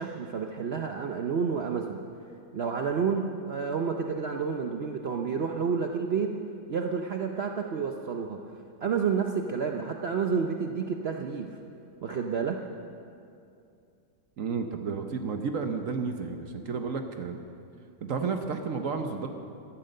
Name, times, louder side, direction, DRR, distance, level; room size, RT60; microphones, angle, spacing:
voice 1, 0.0-2.0 2.5-6.3 6.7-8.4 8.8-11.6 12.0-12.6, right 6 dB, 80° right, 3 dB, 0.5 m, -30 dB
voice 2, 14.4-17.4 18.0-19.3, right 5 dB, 55° right, 6 dB, 1.1 m, -32 dB
13.5 x 13.0 x 6.6 m, 2.5 s
omnidirectional pair, 2.0 m